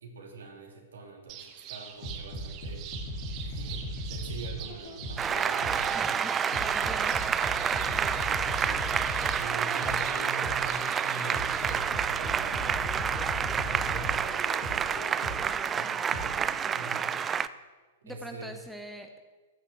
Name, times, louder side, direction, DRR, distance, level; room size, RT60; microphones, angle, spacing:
voice 1, 0.0-2.8 3.4-6.3 8.2-8.8 9.4-12.9 13.4-15.0 15.7-17.2 18.0-18.5, right 3 dB, 65° right, 0 dB, 3.1 m, -43 dB
sound 1, 1.3-11.8, right 9 dB, 35° right, 1.3 m, -45 dB
sound 2, 2.0-6.0 6.5-10.8 11.3-15.6 16.1-16.3, equal, 40° left, 3.9 m, -37 dB
Applause, 5.2-17.5, right 7 dB, 20° right, 0.4 m, -29 dB
voice 2, 5.9-7.7 18.0-19.2, equal, ahead, 3 dB, 1.0 m, -43 dB
14.0 x 6.4 x 7.7 m, 1.3 s
figure-of-eight pair, 105°, 0 cm